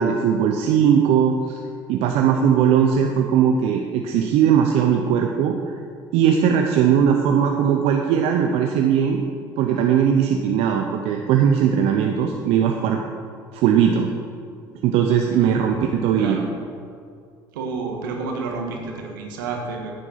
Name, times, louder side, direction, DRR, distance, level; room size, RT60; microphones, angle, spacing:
voice 1, 0.0-1.6 1.9-5.6 6.1-9.2 9.6-13.0 13.5-14.1 14.8-16.4, right 8 dB, 70° right, 3 dB, 0.8 m, -19 dB
voice 2, 15.3-15.7 16.2-16.4 17.5-19.9, right 4 dB, 85° right, 2 dB, 1.5 m, -29 dB
9.9 x 8.0 x 5.8 m, 2.3 s
hypercardioid pair, 65°, 11 cm